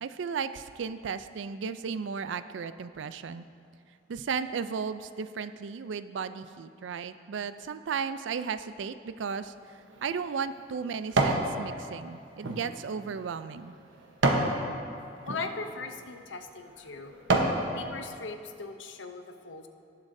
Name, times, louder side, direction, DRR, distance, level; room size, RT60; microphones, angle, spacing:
voice 1, 0.0-3.5 4.1-9.5 10.0-13.7, right 6 dB, 70° right, 12 dB, 0.4 m, -35 dB
sound 1, 9.6-11.5 11.9-14.6 15.2-15.4 16.1-16.3 16.8-17.6 18.1-18.2, right 2 dB, 85° right, 1.0 m, -29 dB
voice 2, 15.3-17.2 17.7-19.7, left 4 dB, 70° left, 7 dB, 0.7 m, -39 dB
18.0 x 7.2 x 2.7 m, 2.5 s
head